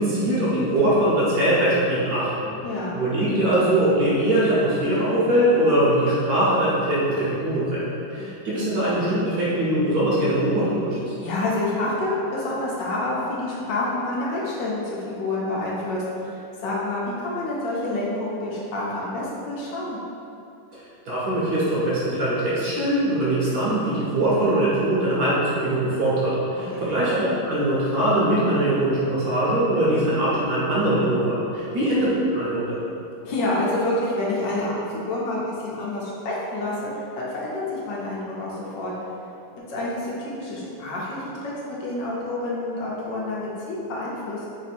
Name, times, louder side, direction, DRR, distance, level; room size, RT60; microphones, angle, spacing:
voice 1, 0.0-2.5 2.9-7.8 8.1-11.1 21.0-32.8, right 1 dB, 60° right, -9 dB, 1.2 m, -22 dB
voice 2, 2.6-3.0 8.1-8.3 11.2-20.0 26.7-26.9 31.7-31.8 33.2-38.9 39.7-44.5, left 2 dB, 70° left, -6 dB, 1.2 m, -28 dB
3.4 x 2.7 x 4.1 m, 2.8 s
omnidirectional pair, 2.2 m